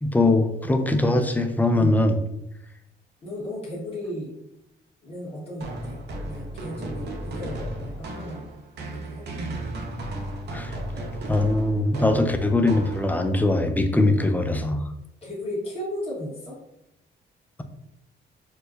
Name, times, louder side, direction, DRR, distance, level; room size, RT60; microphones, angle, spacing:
voice 1, 0.0-2.2 10.5-10.8 11.3-14.8, left 2 dB, 10° left, 6 dB, 0.4 m, -21 dB
voice 2, 3.2-4.3 5.0-6.0 6.2-8.5 8.8-9.5 15.2-16.6, equal, 30° left, -7 dB, 1.3 m, -35 dB
sound 1, 5.6-13.4, right 1 dB, 55° right, 0.7 m, -35 dB
4.4 x 2.1 x 2.6 m, 0.84 s
cardioid pair, 90°, 20 cm